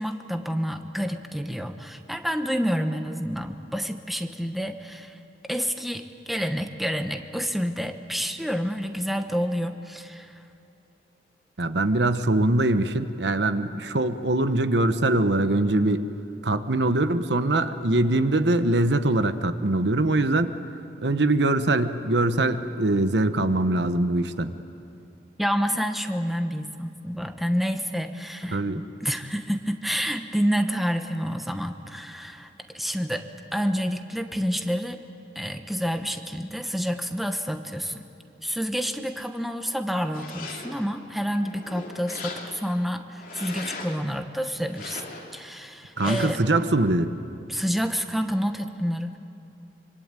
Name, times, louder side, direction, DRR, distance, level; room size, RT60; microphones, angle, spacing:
voice 1, 0.0-5.2 5.5-10.4 25.4-32.5 32.7-35.0 35.3-38.0 38.4-45.0 45.3-46.4 47.5-49.2, equal, ahead, 7 dB, 1.1 m, -28 dB
voice 2, 11.6-16.1 16.4-20.5 21.0-24.5 28.5-28.8 46.0-47.1, right 2 dB, 80° right, 10 dB, 1.1 m, -23 dB
sound 1, 40.0-40.9 41.4-42.8 43.2-44.1 44.6-45.4 46.0-46.5, left 3 dB, 50° left, 2.8 m, -39 dB
26.0 x 25.0 x 9.0 m, 2.8 s
head